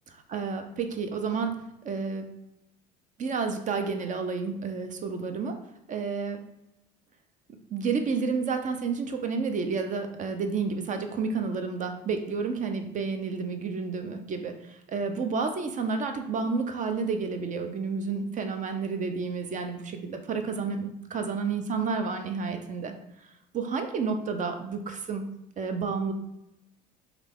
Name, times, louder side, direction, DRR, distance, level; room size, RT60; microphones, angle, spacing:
voice 1, 0.3-2.2 3.2-6.4 7.7-22.9 23.5-25.2 25.6-26.1, right 5 dB, 40° right, 6 dB, 0.6 m, -30 dB
3.2 x 2.4 x 3.4 m, 0.89 s
supercardioid pair, 75°, 20 cm